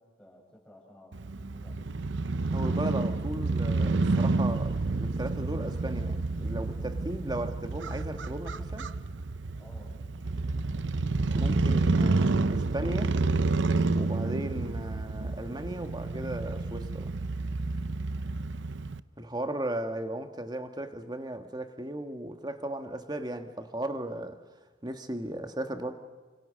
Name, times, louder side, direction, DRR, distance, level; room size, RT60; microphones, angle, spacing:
voice 1, 0.0-1.9 9.5-10.7 18.2-18.5, equal, 5° left, 7.3 m, -55 dB
Crow / Motorcycle, 1.1-19.0, right 3 dB, 80° right, 0.7 m, -29 dB
voice 2, 2.5-8.9 11.3-13.2 13.9-17.1 19.2-24.4 24.8-25.9, right 1 dB, 20° right, 1.5 m, -36 dB
29.0 x 26.0 x 6.5 m
head